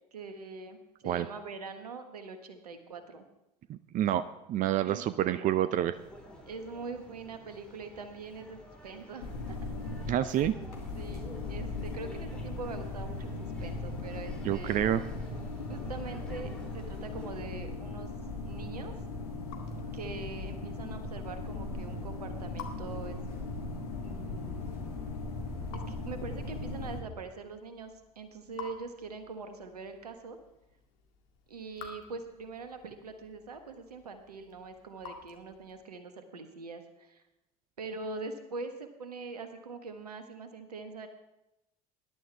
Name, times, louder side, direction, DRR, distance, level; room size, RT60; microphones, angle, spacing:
voice 1, 0.1-0.8 1.0-3.2 4.7-5.4 6.5-9.6 10.9-14.8 15.7-18.1 18.5-18.9 19.9-23.2 24.0-24.8 25.7-30.4 31.5-37.2 37.8-41.1, right 4 dB, 80° right, 8 dB, 1.4 m, -43 dB
voice 2, 3.7-4.2 4.5-5.9 10.1-10.5 14.4-15.0, right 11 dB, 45° right, 13 dB, 0.6 m, -28 dB
sound 1, 5.9-17.4, left 1 dB, 5° left, 4.3 m, -52 dB
sound 2, 9.2-27.0, left 3 dB, 80° left, 2.7 m, -38 dB
Raindrop / Drip, 18.8-36.0, left 6 dB, 60° left, 2.2 m, -53 dB
19.5 x 11.5 x 3.5 m, 0.90 s
figure-of-eight pair, 60°, 20 cm